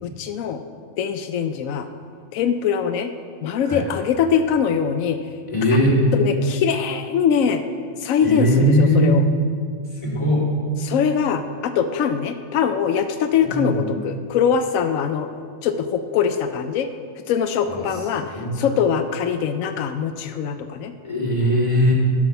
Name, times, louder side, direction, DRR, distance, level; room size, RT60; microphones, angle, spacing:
voice 1, 0.0-0.6 1.0-1.9 2.3-3.1 3.4-5.2 6.1-7.6 8.0-9.2 10.8-15.3 15.6-16.9 17.3-20.9, left 7 dB, 90° left, 8 dB, 1.0 m, -22 dB
voice 2, 5.5-6.0 8.2-9.2 10.0-10.5 13.4-14.0 17.6-17.8 18.3-18.5 21.0-21.9, equal, 25° left, -5 dB, 2.3 m, -19 dB
12.5 x 6.1 x 5.5 m, 2.2 s
omnidirectional pair, 1.3 m